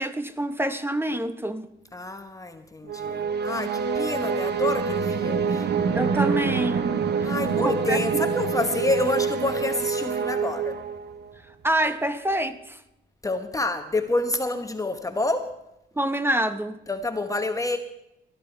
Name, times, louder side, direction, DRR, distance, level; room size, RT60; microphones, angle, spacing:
voice 1, 0.0-1.7 5.9-7.3 7.6-8.2 11.6-12.8 16.0-16.8, right 1 dB, 10° right, 11 dB, 0.8 m, -27 dB
voice 2, 1.9-5.7 7.2-10.8 13.2-15.5 16.9-17.8, left 2 dB, 15° left, 7 dB, 1.1 m, -28 dB
sound 1, 2.9-11.3, right 6 dB, 55° right, 1.0 m, -26 dB
18.5 x 11.5 x 4.5 m, 0.86 s
cardioid pair, 90°, 20 cm